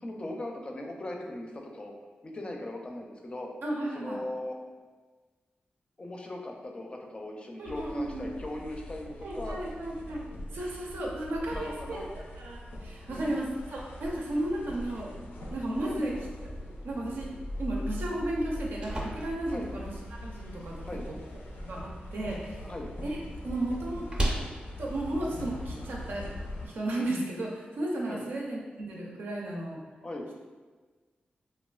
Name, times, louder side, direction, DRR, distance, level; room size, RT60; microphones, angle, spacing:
voice 1, 0.0-1.9 2.2-3.5 3.9-4.6 6.0-9.6 11.5-12.1 13.1-13.4 15.8-16.0 19.5-19.7 20.8-21.1 22.6-22.9 28.1-28.2 30.0-30.3, left 1 dB, 30° left, 1 dB, 0.4 m, -39 dB
voice 2, 3.6-4.2 7.6-8.2 9.2-10.2 10.5-12.0 12.4-15.2 15.5-16.2 16.8-19.9 20.2-21.2 21.6-22.7 23.0-23.2 23.4-24.1 24.8-26.3 26.6-29.8, right 1 dB, 80° right, -2 dB, 0.5 m, -34 dB
Deisel locomotive and crossing bell, 7.7-26.7, left 1 dB, 90° left, 0.4 m, -41 dB
sound 1, 18.4-26.3, right 1 dB, 30° right, 0.5 m, -38 dB
3.1 x 2.3 x 2.3 m, 1.4 s
cardioid pair, 75°, 3 cm